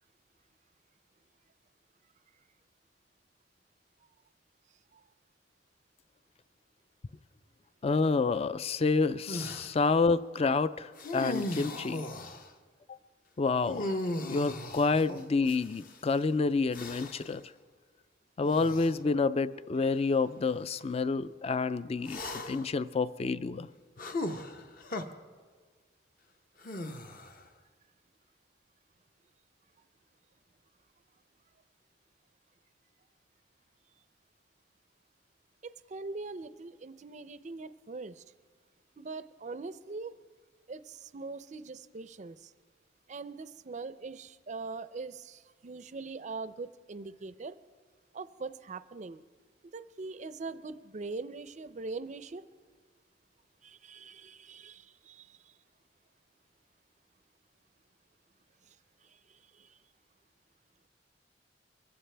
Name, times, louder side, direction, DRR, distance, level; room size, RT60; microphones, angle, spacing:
voice 1, 7.8-12.0 12.9-13.0 13.4-14.0 14.3-17.4 18.4-23.7, left 4 dB, 30° left, 16 dB, 0.4 m, -28 dB
sound 1, 9.3-9.8 11.0-12.5 13.6-16.0 16.7-17.3 18.4-19.0 19.8-19.9 22.0-22.8 24.0-25.0 26.6-27.4, left 1 dB, 45° left, 0.9 m, -37 dB
voice 2, 35.6-38.2 39.0-40.1 40.7-42.5 43.1-47.6 48.1-49.2 49.7-52.4 53.6-55.6 58.7-58.8 59.0-59.8, right 3 dB, 40° right, 13 dB, 0.5 m, -42 dB
24.0 x 15.0 x 3.4 m, 1.5 s
head